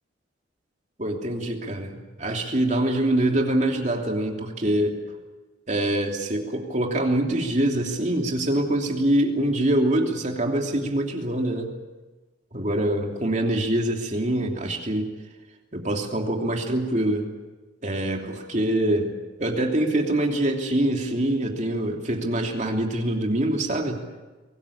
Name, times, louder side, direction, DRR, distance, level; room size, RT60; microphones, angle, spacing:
voice 1, 1.0-5.0 5.7-11.7 12.5-15.1 15.7-17.3 17.8-19.1 19.4-24.0, right 1 dB, 40° right, 2 dB, 3.0 m, -24 dB
24.0 x 18.5 x 8.7 m, 1.2 s
head